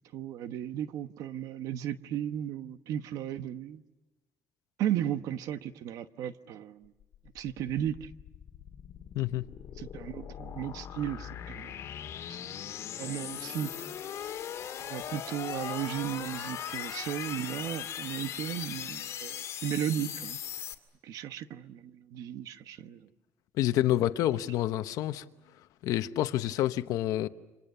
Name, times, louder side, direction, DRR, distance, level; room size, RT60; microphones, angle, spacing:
voice 1, 0.1-3.8 4.8-6.9 7.3-8.1 9.8-11.8 12.3-12.4 13.0-13.7 14.9-20.4 21.0-23.1, right 10 dB, 80° right, 1.2 m, -35 dB
sound 1, 7.0-20.7, left 9 dB, 55° left, 2.4 m, -39 dB
voice 2, 23.6-25.2 25.8-27.3, left 13 dB, 85° left, 1.0 m, -28 dB
30.0 x 26.5 x 6.9 m
cardioid pair, 155°, 6 cm